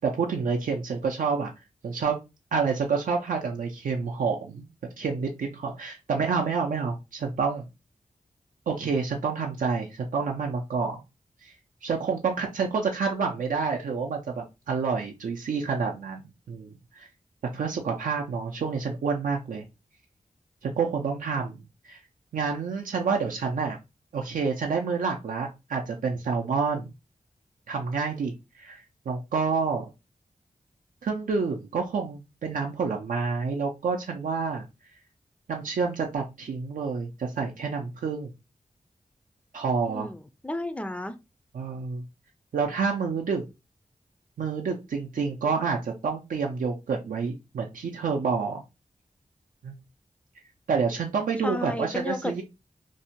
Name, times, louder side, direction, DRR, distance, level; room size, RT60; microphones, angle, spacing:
voice 1, 0.0-1.5 1.8-2.2 2.5-4.6 5.0-7.6 8.7-11.0 11.4-11.5 11.8-17.1 17.5-19.6 20.6-21.6 21.8-22.0 22.3-23.8 24.1-26.9 27.7-29.9 31.0-34.7 35.5-38.3 39.5-40.1 41.5-42.0 42.5-43.4 44.4-48.6 49.6-49.7 50.7-52.4, right 5 dB, 80° right, 0.4 m, -28 dB
voice 2, 39.9-41.1 51.4-52.4, left 1 dB, 10° left, 0.3 m, -32 dB
2.6 x 2.1 x 2.7 m
wide cardioid pair, 75°, 14 cm